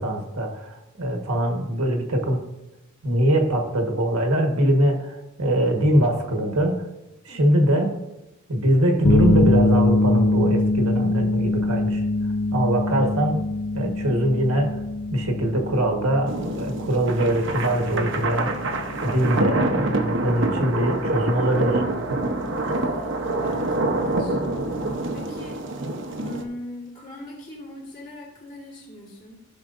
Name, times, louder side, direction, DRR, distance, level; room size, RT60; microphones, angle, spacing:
voice 1, 0.0-2.4 3.0-6.8 7.2-7.9 8.5-12.0 12.5-13.4 13.7-14.8 15.1-18.5 19.0-21.8, right 1 dB, 80° right, 3 dB, 1.4 m, -22 dB
voice 2, 7.3-7.7 22.6-24.4 25.1-25.6 26.2-29.4, left 1 dB, 35° left, -4 dB, 2.7 m, -41 dB
sound 1, 9.0-25.0, left 2 dB, 60° left, 0.5 m, -26 dB
sound 2, 16.3-26.4, right 2 dB, 55° right, 0.8 m, -26 dB
15.0 x 5.9 x 2.6 m, 0.95 s
head